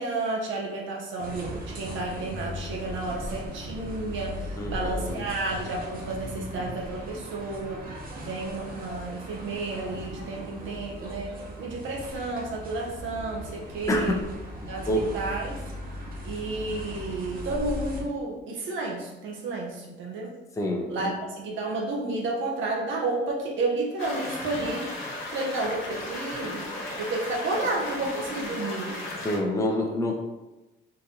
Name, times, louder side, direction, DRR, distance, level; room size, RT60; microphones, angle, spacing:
voice 1, 0.0-14.2 14.7-15.6 16.2-20.4 20.9-25.0 25.3-26.7 27.0-29.1, right 2 dB, 75° right, -1 dB, 0.6 m, -31 dB
sound 1, 1.2-18.0, equal, 45° right, 0.9 m, -38 dB
voice 2, 4.6-5.2 13.9-14.2 14.9-15.1 20.6-21.1 29.2-30.1, left 1 dB, 15° left, 1 dB, 0.5 m, -27 dB
sound 2, 24.0-29.4, left 2 dB, 85° left, 0.8 m, -35 dB
3.8 x 2.6 x 2.8 m, 1.1 s
cardioid pair, 90°, 20 cm